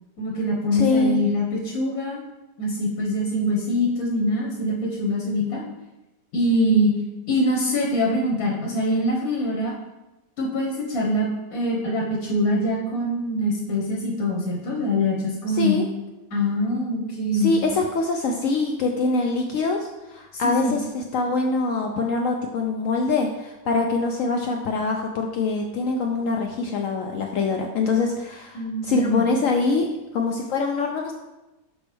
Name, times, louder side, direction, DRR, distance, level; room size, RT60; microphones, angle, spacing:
voice 1, 0.2-2.2 2.6-5.6 6.3-6.9 7.3-9.7 10.4-15.8 16.3-17.5 20.3-20.7 28.5-29.3, left 1 dB, 55° left, -3 dB, 1.4 m, -24 dB
voice 2, 0.7-1.2 15.5-15.8 17.3-31.1, left 3 dB, 75° left, 2 dB, 0.7 m, -24 dB
6.2 x 5.0 x 3.4 m, 1.0 s
omnidirectional pair, 1.9 m